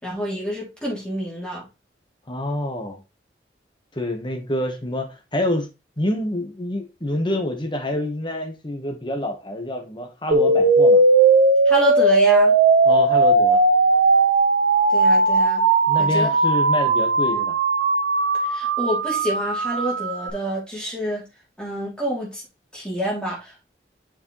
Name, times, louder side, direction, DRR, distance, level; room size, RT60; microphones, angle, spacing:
voice 1, 0.0-1.7 11.6-12.5 14.9-15.6 16.0-16.3 18.5-21.2 21.6-22.4 22.7-23.7, equal, 5° left, 3.0 m, -27 dB
voice 2, 2.3-3.0 3.9-5.7 6.0-11.0 12.8-13.6 15.9-17.6, left 1 dB, 25° left, 1.3 m, -27 dB
sound 1, 10.3-20.3, right 3 dB, 70° right, 0.7 m, -17 dB
6.4 x 5.0 x 3.2 m
head